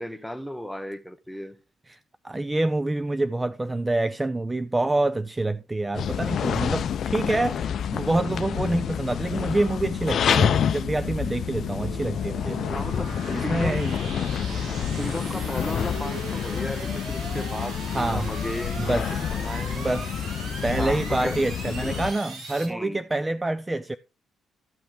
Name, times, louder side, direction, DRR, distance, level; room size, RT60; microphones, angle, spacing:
voice 1, 0.0-1.6 12.7-13.8 14.9-19.0 19.3-19.9 20.7-21.4 21.8-22.2 22.7-23.0, equal, ahead, 0.9 m, -35 dB
voice 2, 2.2-12.9 13.3-13.9 17.9-18.3 18.8-19.1 19.7-20.1 20.6-24.0, right 2 dB, 15° right, 0.4 m, -26 dB
sound 1, 5.9-22.1, left 8 dB, 60° left, 0.5 m, -28 dB
sound 2, 9.2-22.7, right 3 dB, 85° right, 4.5 m, -39 dB
14.0 x 5.7 x 3.3 m
cardioid pair, 90°, 0 cm